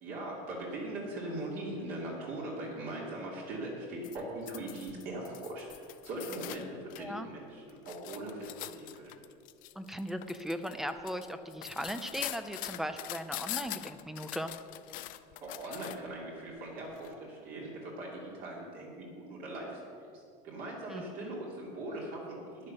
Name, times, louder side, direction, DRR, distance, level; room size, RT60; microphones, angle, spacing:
voice 1, 0.0-9.1 15.4-20.1 20.4-22.7, right 1 dB, 50° right, -4 dB, 2.9 m, -40 dB
sound 1, 4.0-7.1 7.5-16.2 17.0-17.1, left 17 dB, 50° left, 0.5 m, -43 dB
voice 2, 7.0-7.3 9.8-14.5 20.9-21.3, equal, ahead, 9 dB, 0.5 m, -38 dB
11.0 x 9.9 x 6.6 m, 2.4 s
cardioid pair, 160°, 19 cm